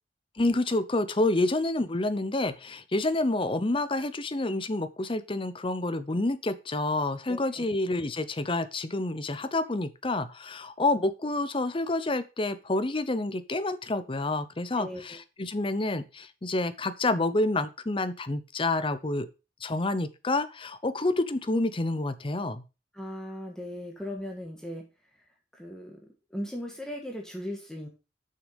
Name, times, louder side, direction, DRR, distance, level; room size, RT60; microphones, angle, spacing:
voice 1, 0.4-19.3 19.6-22.6, left 2 dB, 30° left, 12 dB, 0.7 m, -28 dB
voice 2, 7.3-7.7 14.8-15.2 22.9-24.8 25.1-25.2 25.5-27.9, equal, 5° left, 0 dB, 1.5 m, -38 dB
6.7 x 6.2 x 5.2 m, 0.30 s
head